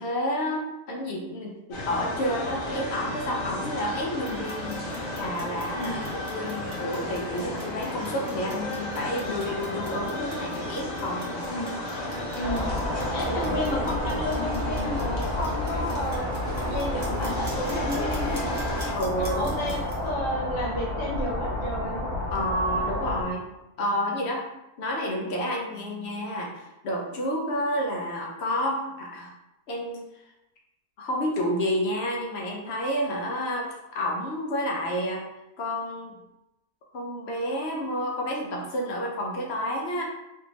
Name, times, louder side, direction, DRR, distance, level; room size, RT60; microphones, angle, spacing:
voice 1, 0.0-4.8 5.2-11.4 19.0-19.8 22.3-23.5 23.8-24.4 24.8-29.3 29.7-30.0 31.0-35.2 35.6-36.1 36.9-40.0, equal, 60° left, -1 dB, 0.8 m, -30 dB
sound 1, 1.7-18.9, left 1 dB, 90° left, 1.3 m, -34 dB
Clock, 4.1-20.1, right 1 dB, 35° right, 0.8 m, -47 dB
voice 2, 5.7-6.1 11.5-11.8 12.3-12.7 13.1-18.6 19.1-22.0, left 1 dB, 45° left, -2 dB, 0.4 m, -32 dB
sound 2, 12.4-23.2, left 1 dB, 65° right, 1.0 m, -30 dB
3.3 x 2.6 x 2.9 m, 0.92 s
omnidirectional pair, 1.4 m